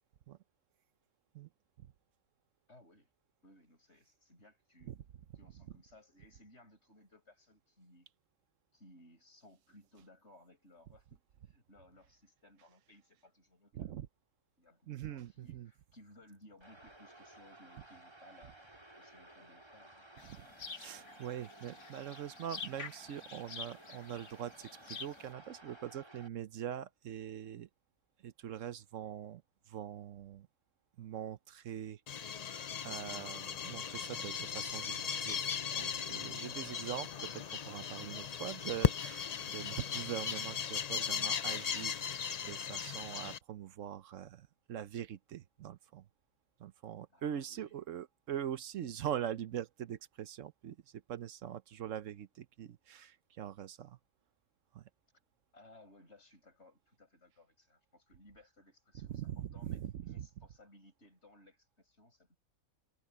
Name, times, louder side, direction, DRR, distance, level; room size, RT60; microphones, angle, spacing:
voice 1, 2.7-3.1 3.4-4.9 5.4-8.1 8.7-13.8 14.6-20.0 20.9-21.1 47.1-47.7 55.5-62.4, left 1 dB, 50° left, 8.0 m, -61 dB
voice 2, 13.7-14.1 14.9-15.7 20.2-20.5 20.7-27.7 28.2-29.4 29.7-30.5 31.0-32.3 32.8-35.4 35.8-46.0 46.6-54.0 54.7-54.9 59.1-60.3, right 10 dB, 65° right, 1.0 m, -43 dB
sound 1, 16.6-26.3, right 2 dB, 15° right, 3.8 m, -56 dB
sound 2, 20.2-25.3, left 5 dB, 85° left, 2.3 m, -48 dB
sound 3, 32.1-43.4, left 7 dB, 70° left, 0.3 m, -37 dB
omnidirectional pair, 1.5 m